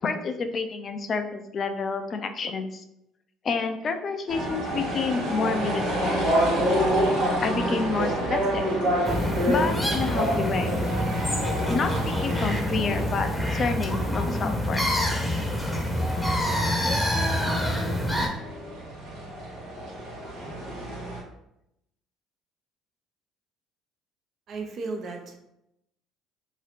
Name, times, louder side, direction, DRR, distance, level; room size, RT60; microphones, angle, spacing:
voice 1, 0.0-2.8 3.4-6.3 7.4-8.7 9.5-10.7 11.7-14.9, left 4 dB, 45° left, 7 dB, 0.4 m, -29 dB
sound 1, 4.3-21.2, equal, 80° right, 1.2 m, -29 dB
sound 2, 5.7-11.9, equal, 70° left, 0.8 m, -40 dB
sound 3, 9.0-18.3, left 1 dB, 5° left, 0.8 m, -27 dB
voice 2, 24.5-25.4, right 3 dB, 55° right, 3 dB, 0.6 m, -34 dB
2.8 x 2.7 x 3.4 m, 0.83 s
hypercardioid pair, 65°, 0 cm